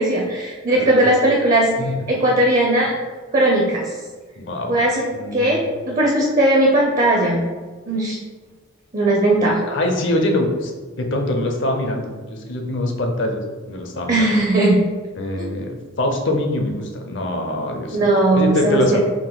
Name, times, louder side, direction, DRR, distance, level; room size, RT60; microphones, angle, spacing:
voice 1, 0.0-1.7 2.1-2.9 3.3-3.9 4.6-5.1 5.3-7.5 7.9-8.2 8.9-9.6 14.1-14.8 15.4-15.5 17.9-19.0, right 1 dB, 35° right, -2 dB, 0.5 m, -18 dB
voice 2, 0.7-1.1 1.8-2.0 4.4-4.8 5.1-5.6 9.7-10.7 11.0-14.4 15.2-19.0, left 1 dB, 60° left, 3 dB, 0.6 m, -24 dB
3.7 x 2.6 x 3.8 m, 1.4 s
head